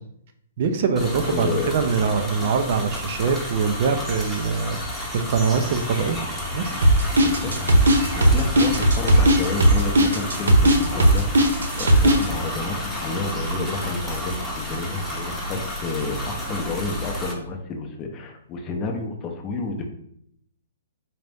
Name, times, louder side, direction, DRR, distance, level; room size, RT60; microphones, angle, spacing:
voice 1, 0.6-4.8 5.1-6.2 6.5-6.8, right 5 dB, 45° right, 7 dB, 0.4 m, -23 dB
sound 1, 1.0-17.3, left 1 dB, 5° right, 0.8 m, -31 dB
voice 2, 1.2-1.7 7.1-7.5 8.1-11.3 11.8-19.9, left 3 dB, 25° left, 3 dB, 0.6 m, -30 dB
sound 2, 6.8-12.2, right 1 dB, 90° right, 0.7 m, -16 dB
4.1 x 2.5 x 3.4 m, 0.70 s
hypercardioid pair, 150°, 0 cm